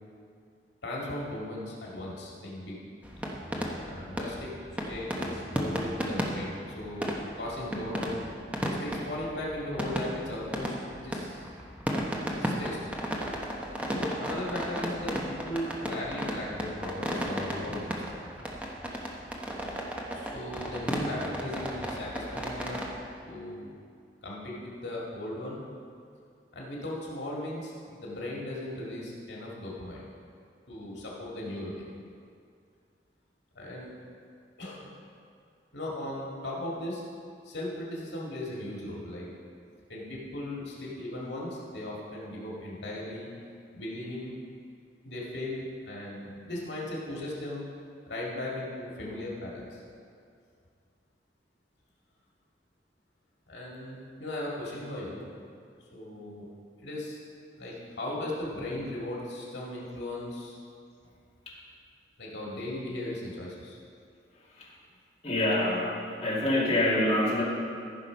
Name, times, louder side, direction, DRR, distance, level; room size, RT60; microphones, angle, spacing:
voice 1, 0.8-2.8 3.8-4.6 4.9-8.2 8.6-11.5 12.3-12.8 13.9-18.1 20.1-22.8 23.3-23.7 24.2-25.6 26.5-30.0 30.7-31.9 33.5-33.9 34.6-34.9 35.7-37.0 37.4-39.3 39.9-43.3 43.7-44.3 45.0-47.7 48.1-49.8 53.5-55.2 55.9-56.5 56.8-57.2 57.6-60.6 62.2-63.8, left 1 dB, 85° left, -5 dB, 2.2 m, -37 dB
sound 1, 3.0-22.9, equal, 10° right, 0.9 m, -34 dB
voice 2, 65.2-67.4, left 1 dB, 35° left, -7 dB, 2.3 m, -26 dB
14.0 x 6.0 x 5.2 m, 2.3 s
head